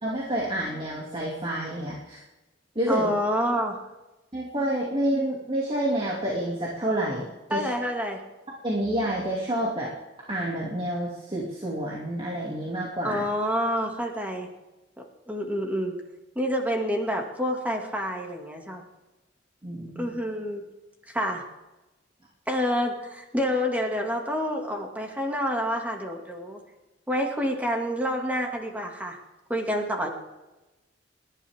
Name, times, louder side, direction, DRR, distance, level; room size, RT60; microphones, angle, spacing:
voice 1, 0.0-2.2 2.7-3.1 4.3-7.7 8.6-9.9 10.3-13.2 19.6-20.1, right 1 dB, 30° right, -4 dB, 2.6 m, -28 dB
voice 2, 2.9-3.8 7.5-8.2 13.0-14.5 15.3-16.0 16.4-18.8 20.0-20.6 21.1-21.4 22.5-26.6 27.1-29.2 29.5-30.1, equal, 10° right, 1 dB, 2.3 m, -28 dB
30.0 x 11.5 x 3.7 m, 1.1 s
head